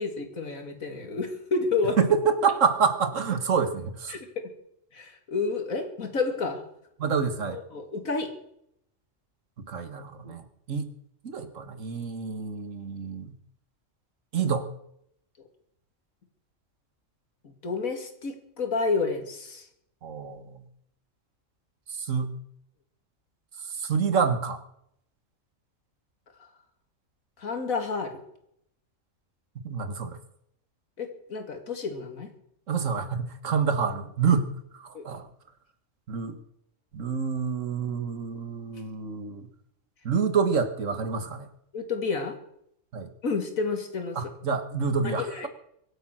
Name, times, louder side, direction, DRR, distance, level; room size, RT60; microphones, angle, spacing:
voice 1, 0.0-2.0 4.1-4.5 4.9-6.6 7.5-8.3 10.2-10.3 17.6-19.7 27.4-28.2 31.0-32.3 34.3-34.4 34.9-35.1 41.7-42.4 43.2-44.2 45.2-45.5, left 4 dB, 80° left, 6 dB, 2.7 m, -30 dB
voice 2, 2.0-4.2 7.0-7.6 9.7-10.9 11.2-13.3 14.3-14.7 20.0-20.7 21.9-22.4 23.6-24.6 29.6-30.2 32.7-35.3 36.1-36.4 36.9-39.5 40.1-41.5 42.9-43.1 44.2-45.5, right 6 dB, 65° right, 10 dB, 1.7 m, -27 dB
23.5 x 8.3 x 6.1 m, 0.73 s
omnidirectional pair, 1.4 m